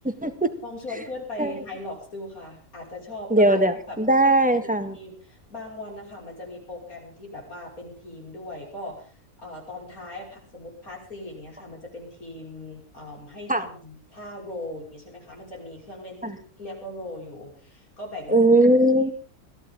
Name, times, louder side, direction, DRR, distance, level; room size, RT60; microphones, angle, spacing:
voice 1, 0.0-0.5 1.4-1.5 3.3-5.0 13.5-13.7 16.2-16.4 18.3-19.1, right 1 dB, 5° right, 8 dB, 1.6 m, -19 dB
voice 2, 0.6-3.6 3.9-4.0 4.6-9.1 9.4-18.5, left 2 dB, 70° left, -1 dB, 6.5 m, -39 dB
22.0 x 15.5 x 3.8 m, 0.39 s
omnidirectional pair, 1.6 m